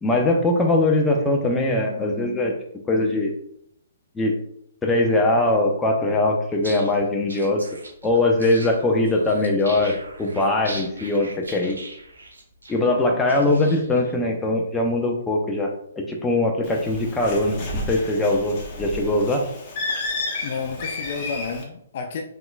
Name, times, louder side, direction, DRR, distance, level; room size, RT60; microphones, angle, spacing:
voice 1, 0.0-2.5 2.9-3.3 4.2-4.3 4.8-7.6 8.0-11.8 12.7-17.5 17.9-19.4, left 2 dB, 10° left, 1 dB, 0.7 m, -21 dB
sound 1, 6.5-14.1, right 2 dB, 75° right, 1.3 m, -40 dB
Bird, 16.6-21.6, left 2 dB, 30° left, 1.1 m, -31 dB
voice 2, 20.4-22.2, left 5 dB, 45° left, 5 dB, 0.5 m, -31 dB
5.7 x 3.9 x 2.3 m, 0.71 s
figure-of-eight pair, 125°, 0 cm